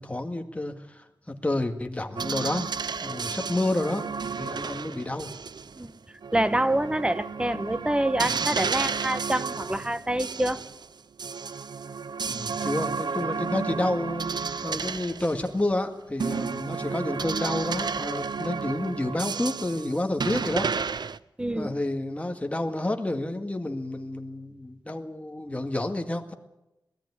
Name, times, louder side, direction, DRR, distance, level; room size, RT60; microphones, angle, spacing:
voice 1, 0.0-2.7 3.0-4.1 4.4-5.3 12.3-14.2 14.6-20.7 21.5-26.3, left 1 dB, 15° left, 5 dB, 2.0 m, -29 dB
sound 1, 2.2-5.8 6.2-10.9 11.2-15.8 16.2-21.2, right 5 dB, 70° right, 0.7 m, -32 dB
voice 2, 6.3-10.6 21.4-21.7, right 1 dB, 15° right, 12 dB, 1.1 m, -26 dB
19.5 x 13.5 x 9.8 m, 0.93 s
wide cardioid pair, 100°, 8 cm